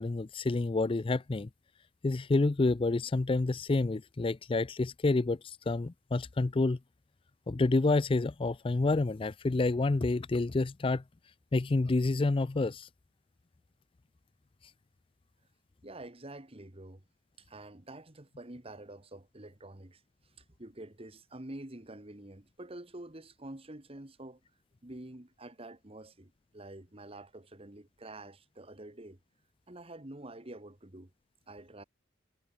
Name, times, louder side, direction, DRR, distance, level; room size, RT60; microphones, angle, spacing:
voice 1, 0.0-1.5 2.0-6.8 7.5-11.0 11.5-12.9, left 3 dB, 25° left, 0.4 m, -28 dB
voice 2, 15.8-17.0 17.4-20.0 20.4-24.4 24.8-29.2 29.7-31.1 31.5-31.8, right 1 dB, 30° right, 1.6 m, -47 dB
head